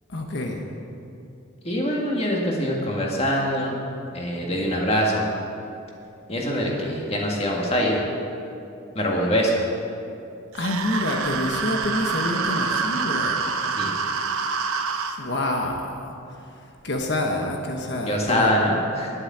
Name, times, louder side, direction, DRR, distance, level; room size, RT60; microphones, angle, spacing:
voice 1, 0.1-0.6 10.5-13.4 15.2-16.0 16.6-18.5, left 1 dB, 55° left, 2 dB, 1.2 m, -27 dB
voice 2, 1.6-3.8 4.1-5.3 6.3-8.0 9.0-9.5 13.8-13.9 18.1-19.1, equal, 30° left, -2 dB, 1.9 m, -23 dB
sound 1, 10.6-15.2, right 5 dB, 90° right, 0.9 m, -26 dB
11.5 x 9.6 x 7.4 m, 2.7 s
head